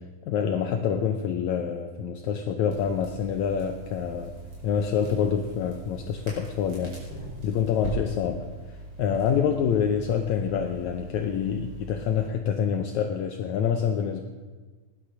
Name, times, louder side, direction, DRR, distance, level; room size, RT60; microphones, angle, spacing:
voice 1, 0.3-4.3 4.6-7.0 7.4-14.2, left 7 dB, 75° left, 4 dB, 2.0 m, -27 dB
Crackle, 2.7-12.3, right 2 dB, 35° right, 5.5 m, -41 dB
17.0 x 11.5 x 6.2 m, 1.4 s
omnidirectional pair, 3.8 m